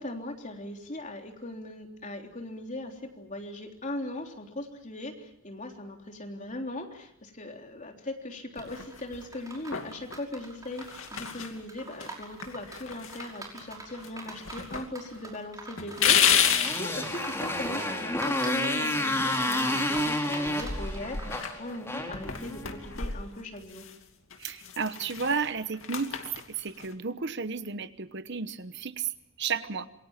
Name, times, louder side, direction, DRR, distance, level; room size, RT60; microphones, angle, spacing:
voice 1, 0.0-16.5 16.8-23.9, left 1 dB, 35° left, 3 dB, 3.5 m, -39 dB
sound 1, 8.6-9.3 9.7-10.2 10.7-11.6 12.0-12.1 12.4-13.7 14.0-14.9 15.1-15.2 15.8-16.9 18.7-20.1 20.4-24.0 24.3-26.9, left 8 dB, 75° left, 2.5 m, -31 dB
sound 2, 8.6-21.4, right 3 dB, 15° right, 5.5 m, -45 dB
Motorcycle, 16.4-22.9, left 1 dB, 15° left, 3.2 m, -30 dB
voice 2, 24.4-26.1 26.6-29.1 29.4-29.9, right 5 dB, 55° right, 12 dB, 1.1 m, -32 dB
27.5 x 22.5 x 7.5 m, 0.77 s
head